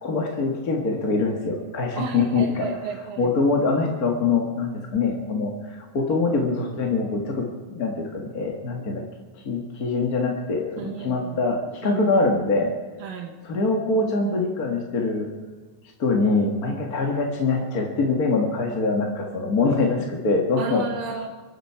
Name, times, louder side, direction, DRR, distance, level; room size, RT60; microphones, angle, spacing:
voice 1, 0.0-9.0 9.4-12.7 13.4-15.3 16.0-20.9, left 3 dB, 40° left, 1 dB, 1.5 m, -24 dB
voice 2, 2.0-3.3 10.8-11.4 11.8-12.2 13.0-13.3 20.6-21.3, right 6 dB, 90° right, 0 dB, 3.3 m, -33 dB
24.5 x 11.0 x 4.8 m, 1.4 s
omnidirectional pair, 3.9 m